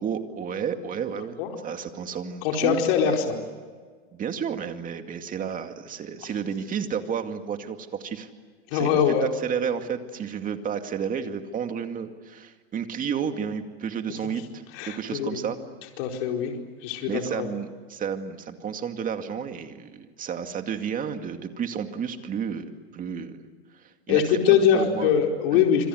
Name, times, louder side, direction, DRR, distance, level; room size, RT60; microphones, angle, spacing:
voice 1, 0.0-1.4 1.6-3.2 4.1-8.3 8.7-15.6 17.1-23.4 23.8-25.1 25.5-25.6, right 7 dB, 25° right, 7 dB, 2.3 m, -31 dB
voice 2, 2.4-3.3 8.7-9.3 14.7-15.4 16.0-16.5 16.8-17.5 24.1-25.9, left 8 dB, 60° left, 2 dB, 4.6 m, -22 dB
26.5 x 26.0 x 8.0 m, 1.5 s
supercardioid pair, 135°, 32 cm